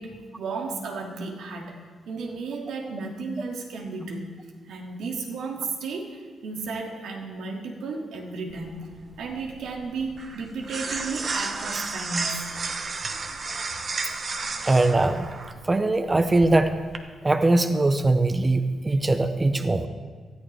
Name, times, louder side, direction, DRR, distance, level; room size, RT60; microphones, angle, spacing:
voice 1, 0.0-1.8 2.1-4.3 4.6-8.8 9.2-12.4, right 4 dB, 85° right, 1 dB, 2.3 m, -33 dB
sound 1, 8.5-17.0, right 4 dB, 35° right, 0.9 m, -33 dB
voice 2, 14.6-15.3 15.7-16.7 17.2-19.9, right 2 dB, 15° right, 8 dB, 0.5 m, -21 dB
19.5 x 13.5 x 3.4 m, 1.5 s
wide cardioid pair, 170°, 0 cm